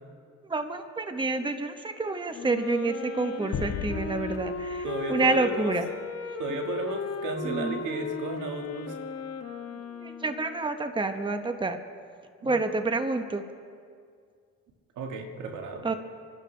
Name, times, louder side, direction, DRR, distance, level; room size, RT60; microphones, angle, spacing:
voice 1, 0.5-5.9 7.4-7.8 9.9-11.8 12.4-13.5 15.8-15.9, right 3 dB, 15° right, 7 dB, 1.0 m, -28 dB
Wind instrument woodwind instrument, 2.3-10.7, left 5 dB, 55° left, 1.3 m, -36 dB
sound 1, 3.5-6.1, left 7 dB, 80° left, 1.8 m, -37 dB
voice 2, 4.8-5.7 6.4-9.0 12.4-12.5 15.0-15.9, right 3 dB, 90° right, 3 dB, 1.7 m, -34 dB
27.5 x 12.0 x 3.3 m, 2.2 s
cardioid pair, 90°, 30 cm